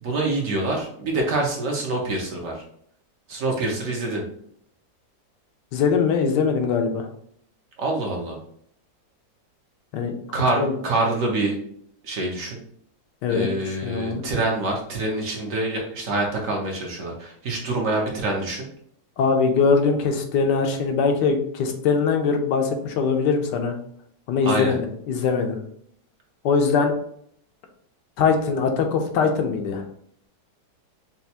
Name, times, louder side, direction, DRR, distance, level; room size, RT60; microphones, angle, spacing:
voice 1, 0.0-2.6 3.3-4.3 7.8-8.4 10.3-11.6 12.0-12.6 13.3-18.7 24.4-24.8, right 2 dB, 60° right, 0 dB, 1.1 m, -26 dB
voice 2, 5.7-7.1 9.9-10.1 10.6-10.8 13.2-14.2 19.2-23.8 24.3-25.6 26.4-26.9 28.2-29.8, left 5 dB, 85° left, 4 dB, 1.3 m, -22 dB
5.5 x 2.5 x 2.8 m, 0.66 s
omnidirectional pair, 1.8 m